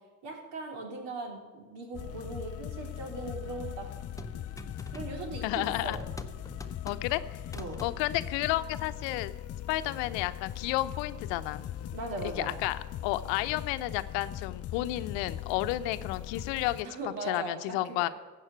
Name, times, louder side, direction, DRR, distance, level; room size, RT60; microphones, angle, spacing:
voice 1, 0.2-3.9 4.3-4.5 4.9-6.0 7.5-7.8 11.9-12.5 16.8-18.1, right 3 dB, 65° right, 1 dB, 3.5 m, -39 dB
sound 1, 1.9-16.8, left 12 dB, 35° left, 0.5 m, -40 dB
sound 2, 4.2-5.5 5.9-7.2 7.4-7.9 8.4-9.3, left 1 dB, 5° left, 0.8 m, -45 dB
voice 2, 5.4-6.0 6.8-7.4 7.8-9.3 9.7-11.6 12.4-16.9 17.3-18.1, left 16 dB, 65° left, 12 dB, 0.8 m, -31 dB
15.0 x 5.6 x 8.9 m, 1.3 s
hypercardioid pair, 65°, 48 cm